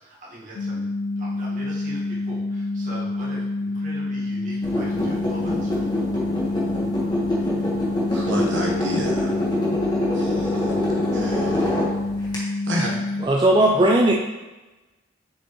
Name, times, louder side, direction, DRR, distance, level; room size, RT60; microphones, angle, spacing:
voice 1, 0.0-5.8, right 1 dB, 45° right, -5 dB, 1.6 m, -41 dB
sound 1, 0.6-13.3, left 2 dB, 65° left, 0.3 m, -28 dB
sound 2, 4.6-12.4, left 1 dB, 20° left, 1.4 m, -25 dB
voice 2, 8.1-9.3 10.1-10.7 11.1-11.8 12.7-13.0, equal, 85° right, -1 dB, 1.3 m, -29 dB
voice 3, 13.2-14.1, right 1 dB, 25° right, -1 dB, 0.4 m, -17 dB
6.9 x 4.9 x 3.1 m, 1.1 s
head